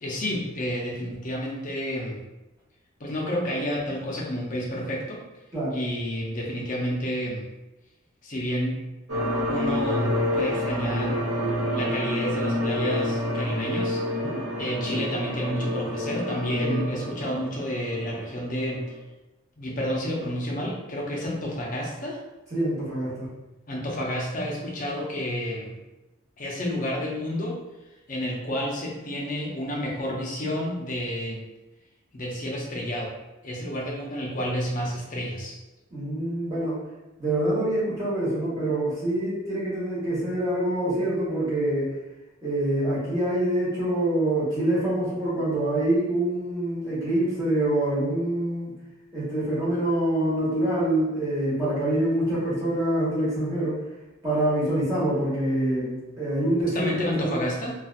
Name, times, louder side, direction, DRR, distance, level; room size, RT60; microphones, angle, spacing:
voice 1, 0.0-2.2 3.0-5.2 5.7-7.5 8.2-8.8 9.5-11.2 11.7-14.0 14.6-18.9 19.6-22.2 23.7-25.8 26.4-27.6 28.1-31.4 32.1-33.1 33.4-35.6 56.7-57.7, equal, 35° left, -2 dB, 0.5 m, -30 dB
sound 1, 9.1-19.0, left 1 dB, 75° right, 1.1 m, -28 dB
voice 2, 22.5-23.3 35.9-36.8 37.2-41.9 42.4-48.7 49.1-53.8 54.2-56.9 57.2-57.4, right 1 dB, 15° right, -10 dB, 1.2 m, -25 dB
2.8 x 2.3 x 2.4 m, 1.0 s
head